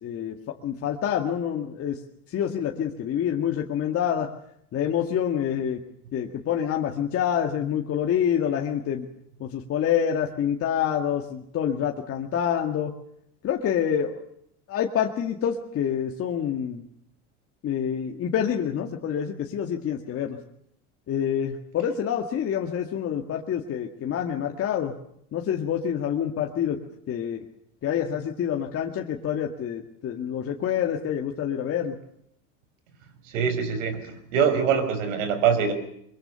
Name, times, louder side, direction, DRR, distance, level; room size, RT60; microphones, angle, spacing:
voice 1, 0.0-0.3 0.6-2.0 2.3-4.3 4.7-5.8 6.1-9.1 9.4-12.9 13.4-14.2 14.7-16.8 17.6-20.4 21.1-24.9 25.3-26.8 27.1-27.4 27.8-32.0, left 9 dB, 35° left, 2 dB, 2.0 m, -27 dB
voice 2, 33.3-35.7, right 7 dB, 80° right, 11 dB, 5.2 m, -24 dB
23.0 x 23.0 x 6.9 m, 0.72 s
supercardioid pair, 115°, 38 cm